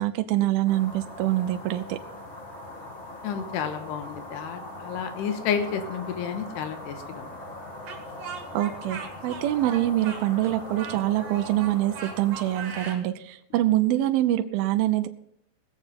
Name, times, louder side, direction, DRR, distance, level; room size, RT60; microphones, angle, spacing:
voice 1, 0.0-2.0 8.5-15.1, right 14 dB, 80° right, 8 dB, 2.2 m, -25 dB
sound 1, 0.6-12.9, left 1 dB, 40° left, 0.9 m, -41 dB
voice 2, 3.2-7.3, left 7 dB, 80° left, 8 dB, 3.2 m, -31 dB
Speech, 7.9-13.0, right 6 dB, 55° right, 2.0 m, -39 dB
19.5 x 7.4 x 5.2 m, 0.73 s
omnidirectional pair, 5.0 m